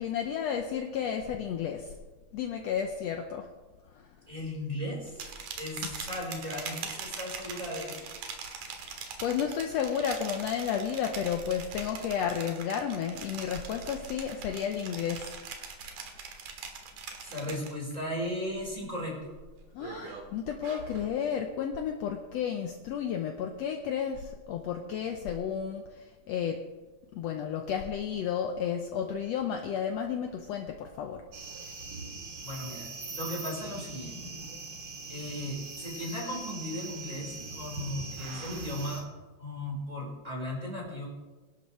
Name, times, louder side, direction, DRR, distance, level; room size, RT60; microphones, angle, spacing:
voice 1, 0.0-1.9 2.3-3.5 3.9-4.1 9.2-15.3 19.7-26.6 27.1-31.2, left 8 dB, 70° left, 4 dB, 1.7 m, -32 dB
voice 2, 4.3-5.2 5.6-8.1 17.2-19.3 32.4-32.9 33.1-34.1 35.1-39.0 39.4-41.1, left 1 dB, 10° right, -3 dB, 4.0 m, -36 dB
sound 1, 5.1-18.0 18.4-18.8 19.2-21.1, right 5 dB, 80° right, 2.9 m, -42 dB
sound 2, 31.3-39.0, right 3 dB, 40° right, 2.1 m, -41 dB
22.5 x 11.5 x 3.2 m, 1.2 s
omnidirectional pair, 3.5 m